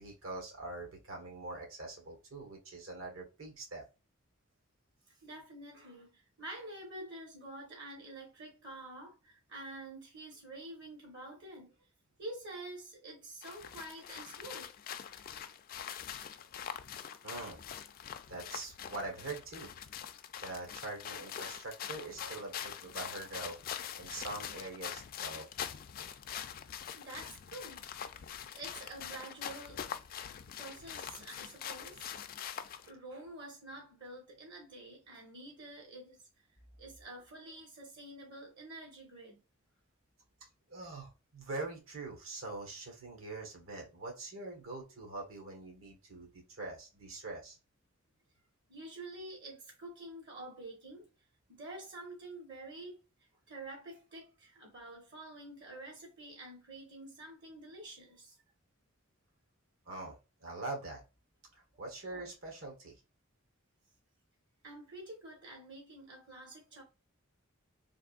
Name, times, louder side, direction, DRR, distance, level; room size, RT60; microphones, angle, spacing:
voice 1, 0.0-3.8 17.2-17.6 18.3-19.7 20.4-23.6 23.9-25.5 40.7-46.3 46.6-47.6 59.9-60.2 60.4-61.0 61.8-62.9, right 2 dB, 75° right, 1.4 m, -43 dB
voice 2, 5.1-11.7 12.2-14.7 16.3-16.4 22.1-22.5 26.9-27.9 28.5-29.8 30.5-32.2 32.8-36.3 36.8-39.4 48.7-51.1 51.6-53.0 53.5-58.4 64.6-66.8, right 2 dB, 60° right, 1.1 m, -48 dB
sound 1, 13.4-32.9, left 9 dB, 45° left, 0.3 m, -44 dB
3.5 x 2.5 x 2.3 m
head